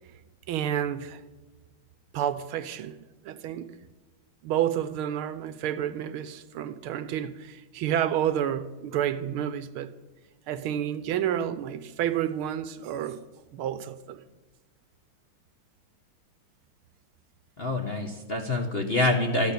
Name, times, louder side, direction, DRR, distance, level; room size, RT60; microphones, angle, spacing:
voice 1, 0.5-1.2 2.1-3.7 4.4-9.9 10.5-13.2 13.5-14.2, right 10 dB, 80° right, 1.6 m, -30 dB
voice 2, 17.6-19.5, left 2 dB, 40° left, 0.9 m, -26 dB
13.0 x 11.5 x 6.7 m
omnidirectional pair, 2.4 m